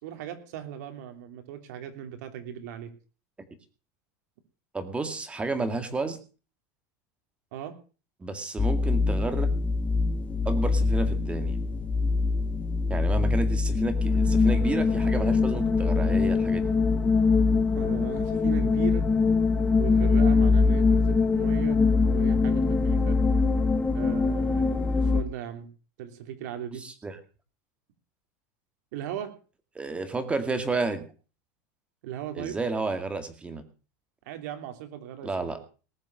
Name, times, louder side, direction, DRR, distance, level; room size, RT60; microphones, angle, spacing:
voice 1, 0.0-2.9 7.5-7.7 17.7-19.0 19.8-21.8 22.1-23.2 23.9-25.7 26.0-26.8 28.9-29.3 32.0-32.6 34.2-35.5, right 10 dB, 75° right, 7 dB, 3.2 m, -38 dB
voice 2, 4.7-6.2 8.2-9.5 10.4-11.6 12.9-16.7 26.8-27.2 29.8-31.0 32.3-33.6 35.2-35.6, right 3 dB, 10° right, 8 dB, 2.3 m, -31 dB
sound 1, 8.6-25.2, left 4 dB, 15° left, 1.4 m, -23 dB
19.5 x 7.3 x 6.6 m, 0.37 s
supercardioid pair, 145°, 10 cm